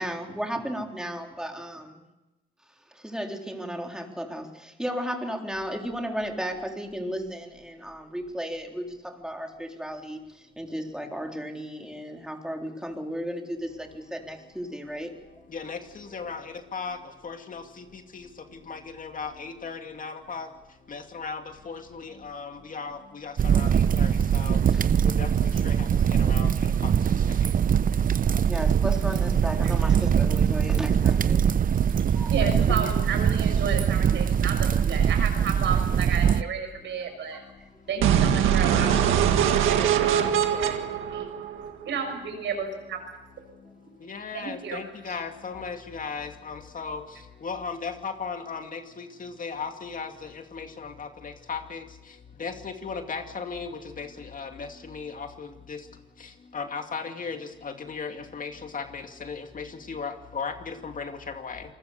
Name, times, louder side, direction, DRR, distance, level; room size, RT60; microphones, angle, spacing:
voice 1, 0.0-2.0 3.0-10.2 10.6-15.1 24.7-24.9 28.2-31.4 32.1-32.3, equal, 5° right, 2 dB, 3.8 m, -34 dB
voice 2, 15.5-17.0 17.2-18.3 18.7-20.5 20.9-24.6 25.0-26.5 26.8-26.9 32.4-32.9 44.0-47.0 47.4-51.8 52.4-53.7 54.0-55.8 56.5-61.6, left 5 dB, 40° left, 5 dB, 2.5 m, -36 dB
sound 1, 23.4-36.4, right 8 dB, 45° right, 0.7 m, -22 dB
voice 3, 32.3-37.4 37.9-40.2 40.5-41.3 41.8-43.0 43.8-43.9 44.3-45.1, right 5 dB, 70° right, 5 dB, 6.5 m, -32 dB
sound 2, 38.0-42.0, right 9 dB, 85° right, 1.9 m, -22 dB
28.0 x 20.5 x 6.8 m, 1.0 s
cardioid pair, 90°, 20 cm